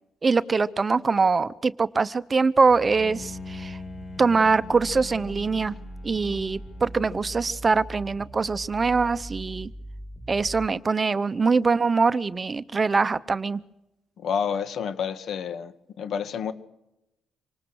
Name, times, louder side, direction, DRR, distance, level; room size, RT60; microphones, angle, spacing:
voice 1, 0.2-3.8 4.2-5.7 6.0-9.7 10.3-13.6, right 4 dB, 30° right, 16 dB, 0.7 m, -23 dB
sound 1, 2.7-10.7, right 1 dB, 10° right, 2.7 m, -41 dB
Bowed string instrument, 2.9-7.9, left 3 dB, 45° left, 2.6 m, -43 dB
voice 2, 14.2-16.5, left 7 dB, 65° left, 12 dB, 1.6 m, -29 dB
26.0 x 19.5 x 6.3 m, 0.90 s
cardioid pair, 90°, 0 cm